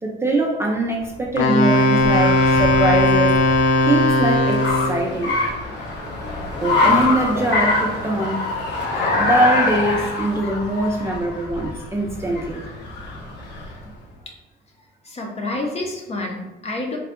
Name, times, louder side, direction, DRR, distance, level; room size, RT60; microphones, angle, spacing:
voice 1, 0.0-3.4 3.8-5.4 6.6-8.4 9.2-12.6, right 2 dB, 15° right, -2 dB, 0.4 m, -22 dB
Car, 1.0-13.9, left 3 dB, 65° left, 1.0 m, -25 dB
Wind instrument woodwind instrument, 1.4-5.1, left 2 dB, 85° left, 0.5 m, -17 dB
voice 2, 15.0-17.0, left 2 dB, 35° left, 1 dB, 0.7 m, -28 dB
3.6 x 2.3 x 3.6 m, 1.1 s
cardioid pair, 140°, 19 cm